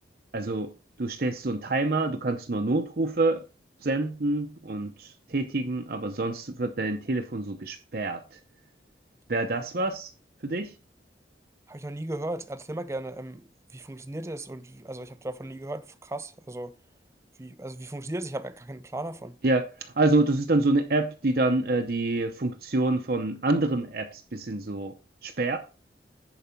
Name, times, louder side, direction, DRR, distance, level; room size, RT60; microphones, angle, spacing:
voice 1, 0.3-0.7 1.0-3.4 3.8-8.4 9.3-10.1 10.4-10.7 19.4-24.9 25.2-25.6, right 2 dB, 55° right, 0.8 m, -27 dB
voice 2, 11.7-16.8 17.4-19.4, right 1 dB, 15° right, 0.4 m, -36 dB
10.5 x 4.9 x 4.4 m
head